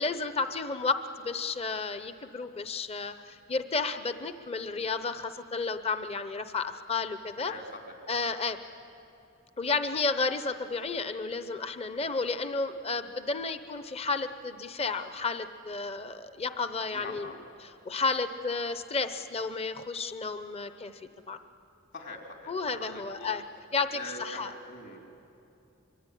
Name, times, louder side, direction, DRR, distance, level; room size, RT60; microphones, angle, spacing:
voice 1, 0.0-7.5 8.1-8.6 9.6-20.9 21.3-21.4 22.5-23.4 23.7-24.5, left 4 dB, 30° left, 10 dB, 0.8 m, -32 dB
voice 2, 7.4-7.9 16.9-17.3 21.9-23.3 23.9-25.0, left 2 dB, 60° left, 2 dB, 3.7 m, -43 dB
25.0 x 23.5 x 10.0 m, 2.8 s
head